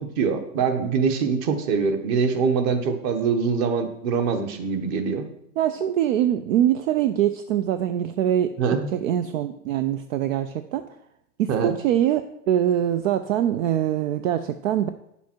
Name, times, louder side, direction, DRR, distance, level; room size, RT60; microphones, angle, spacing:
voice 1, 0.0-5.2 8.6-8.9 11.5-11.7, right 5 dB, 35° right, 7 dB, 1.2 m, -24 dB
voice 2, 5.6-8.5 8.9-10.8 11.4-12.2 12.5-14.9, right 11 dB, 60° right, 10 dB, 0.7 m, -23 dB
9.5 x 7.1 x 4.5 m, 0.79 s
hypercardioid pair, 135°, 46 cm